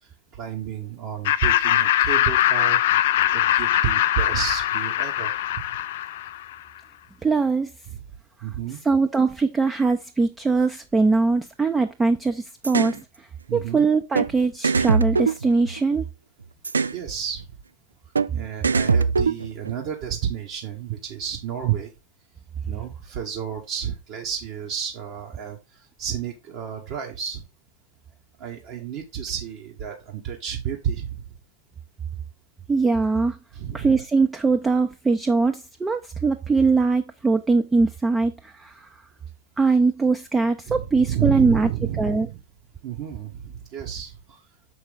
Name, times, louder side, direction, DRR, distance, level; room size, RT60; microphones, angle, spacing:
voice 1, 0.0-5.4 5.7-5.8 7.9-8.0 8.4-8.8 13.5-13.9 14.8-14.9 16.9-17.5 18.3-21.9 22.6-27.4 28.4-31.4 33.5-33.9 40.7-42.4 42.8-44.4, right 9 dB, 45° right, 1.6 m, -31 dB
Laughter, 1.3-6.5, left 12 dB, 55° left, 0.4 m, -22 dB
voice 2, 7.2-7.7 8.8-16.1 32.7-33.4 33.7-38.9 39.6-41.7 42.0-42.3, right 4 dB, 10° right, 0.6 m, -21 dB
sound 1, 12.6-13.0 14.1-14.3 14.6-16.0 16.6-17.0 18.1-18.3 18.6-19.7, right 5 dB, 75° right, 0.4 m, -22 dB
7.0 x 5.4 x 3.9 m
figure-of-eight pair, 90°, 0 cm